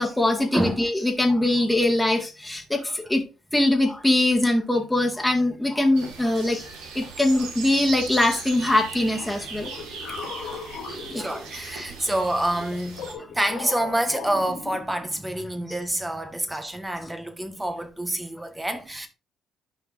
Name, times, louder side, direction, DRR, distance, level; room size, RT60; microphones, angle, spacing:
voice 1, 0.0-3.2 3.5-6.6 7.0-9.7 10.9-11.3, left 1 dB, 10° left, 2.1 m, -22 dB
voice 2, 0.5-0.9 11.1-13.0 13.3-19.1, right 1 dB, 15° right, 1.7 m, -27 dB
sound 1, 5.9-13.1, right 4 dB, 75° right, 2.1 m, -38 dB
sound 2, 9.1-11.9 12.5-15.2, left 5 dB, 65° left, 2.6 m, -38 dB
11.0 x 5.7 x 2.8 m
hypercardioid pair, 50°, 0 cm